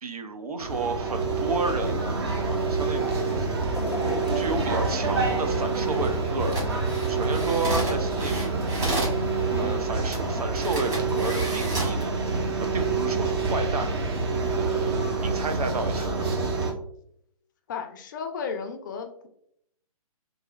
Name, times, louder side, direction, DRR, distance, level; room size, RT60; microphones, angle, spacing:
voice 1, 0.0-3.5 4.3-6.8 7.1-8.8 9.6-12.2 12.7-13.9 14.5-16.3, right 3 dB, 80° right, 7 dB, 0.6 m, -32 dB
sound 1, 0.6-16.7, right 3 dB, 40° right, 0.7 m, -27 dB
sound 2, 3.7-6.9 7.3-7.5 8.5-8.6, left 2 dB, 85° left, 0.5 m, -37 dB
sound 3, 6.4-9.2 10.1-10.2 10.6-12.0 12.6-12.8, right 2 dB, 20° right, 1.3 m, -32 dB
voice 2, 9.5-9.9 17.7-19.3, left 6 dB, 35° left, 6 dB, 0.4 m, -34 dB
4.0 x 2.5 x 2.4 m, 0.71 s
figure-of-eight pair, 135°, 19 cm